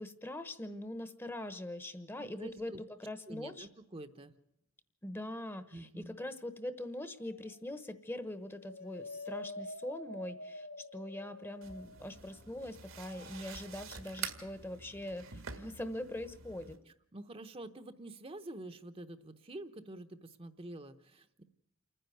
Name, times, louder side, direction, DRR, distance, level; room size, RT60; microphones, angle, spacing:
voice 1, 0.0-2.7 3.0-3.7 5.0-16.8, left 1 dB, 10° left, 11 dB, 1.0 m, -42 dB
voice 2, 2.2-2.8 3.3-4.4 5.7-6.2 17.1-21.4, right 1 dB, 30° right, 9 dB, 0.9 m, -47 dB
sound 1, 7.2-7.8 8.2-12.4 12.9-14.2, left 2 dB, 80° left, 1.6 m, -47 dB
sound 2, 11.6-16.8, right 6 dB, 80° right, 2.0 m, -47 dB
28.5 x 10.0 x 9.3 m, 0.80 s
head